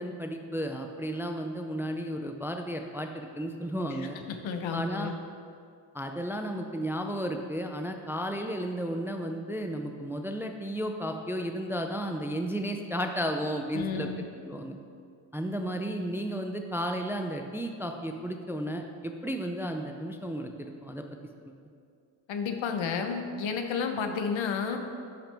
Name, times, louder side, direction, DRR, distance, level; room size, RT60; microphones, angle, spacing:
voice 1, 0.0-4.2 4.7-5.1 5.9-14.1 14.4-14.8 15.3-21.0, equal, 5° right, 4 dB, 0.3 m, -33 dB
voice 2, 4.0-5.1 13.7-14.2 22.3-24.8, left 6 dB, 80° left, 5 dB, 0.9 m, -32 dB
10.0 x 6.0 x 3.4 m, 2.3 s
cardioid pair, 110°, 46 cm